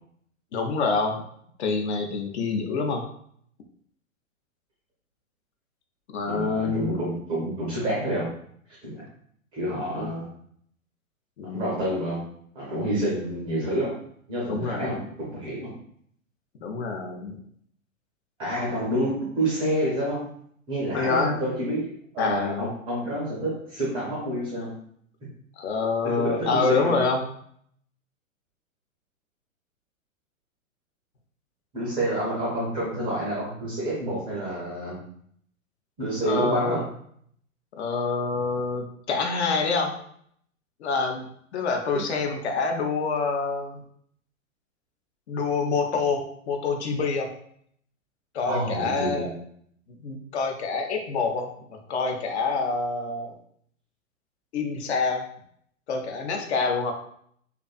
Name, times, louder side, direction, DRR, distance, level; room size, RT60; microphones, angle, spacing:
voice 1, 0.5-1.2 1.6-3.0 6.1-7.0 10.0-10.1 11.4-11.7 12.9-13.1 14.5-15.1 16.6-17.4 20.9-21.6 22.2-22.7 25.6-27.2 36.3-36.8 37.8-39.9 40.8-41.2 41.5-43.8 45.3-47.3 48.3-49.3 50.0-51.5 51.9-53.3 54.5-55.3 55.9-56.9, left 4 dB, 55° left, 3 dB, 0.5 m, -26 dB
voice 2, 6.3-8.3 8.8-8.9 9.5-10.3 11.5-12.2 12.5-13.9 14.3-15.7 18.4-20.2 20.7-24.7 26.0-26.9 31.7-35.0 36.0-36.8 41.9-42.0 48.5-49.3, right 1 dB, 15° right, -6 dB, 0.4 m, -28 dB
2.5 x 2.3 x 2.2 m, 0.66 s
figure-of-eight pair, 110°, 42 cm